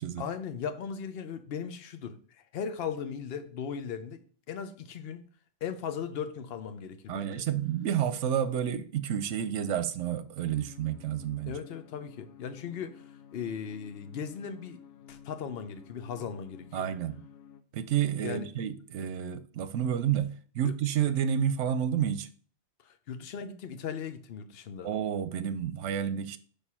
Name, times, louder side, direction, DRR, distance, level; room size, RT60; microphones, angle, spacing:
voice 1, 0.2-5.3 5.6-7.4 11.5-14.8 15.1-16.9 18.2-18.5 20.6-20.7 22.8-24.9, left 7 dB, 60° left, 0.9 m, -38 dB
voice 2, 7.1-11.5 16.7-17.2 17.7-22.3 24.8-26.4, right 9 dB, 80° right, 1.0 m, -30 dB
sound 1, 10.4-17.6, left 8 dB, 85° left, 1.0 m, -52 dB
5.1 x 4.8 x 5.6 m
omnidirectional pair, 1.2 m